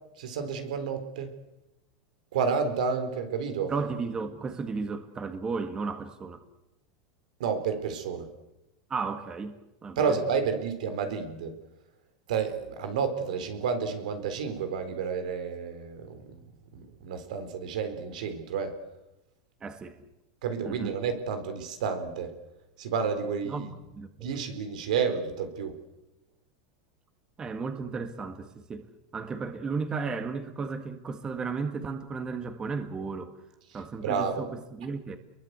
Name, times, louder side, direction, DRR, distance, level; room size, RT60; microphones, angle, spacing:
voice 1, 0.2-1.3 2.3-3.7 7.4-8.3 10.0-11.5 12.3-16.4 16.7-18.7 20.4-22.3 22.8-23.7 24.2-25.8 33.7-34.4, right 6 dB, 80° right, 4.1 m, -30 dB
voice 2, 3.7-6.4 8.9-9.5 9.8-10.1 19.6-20.0 20.7-20.9 23.5-24.3 27.4-28.9 29.1-33.3 33.7-35.2, right 4 dB, 20° right, 2.0 m, -34 dB
29.5 x 22.5 x 8.2 m
supercardioid pair, 140°, 4 cm